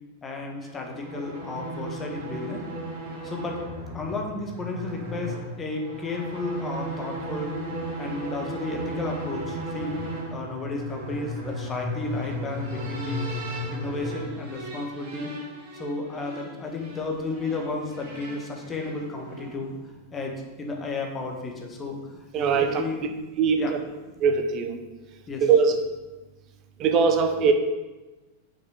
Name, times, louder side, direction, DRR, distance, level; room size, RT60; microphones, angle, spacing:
voice 1, 0.2-2.6 3.2-3.6 3.9-7.5 8.0-9.9 10.3-13.2 13.7-15.3 15.7-19.7 20.1-22.0 22.4-23.0 23.6-23.8 25.3-25.5, left 3 dB, 20° left, 1 dB, 1.4 m, -33 dB
sound 1, 0.6-19.7, right 1 dB, 50° right, 1.9 m, -35 dB
voice 2, 22.3-22.8 23.4-23.6 24.2-24.8 25.4-25.7 26.8-27.5, right 6 dB, 35° right, 6 dB, 0.8 m, -21 dB
6.5 x 5.6 x 4.9 m, 1.2 s
figure-of-eight pair, 90°, 0 cm